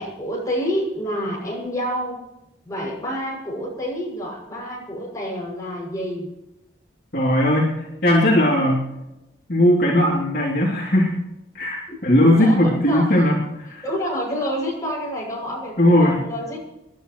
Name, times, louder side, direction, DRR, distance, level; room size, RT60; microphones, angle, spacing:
voice 1, 0.0-2.2 2.6-6.3 11.9-12.0 12.4-13.1 13.8-16.6, equal, 15° left, -4 dB, 6.6 m, -28 dB
voice 2, 7.1-8.9 9.5-11.1 11.5-13.8 15.8-16.2, left 1 dB, 50° left, -4 dB, 2.9 m, -18 dB
28.0 x 11.5 x 3.1 m, 0.94 s
head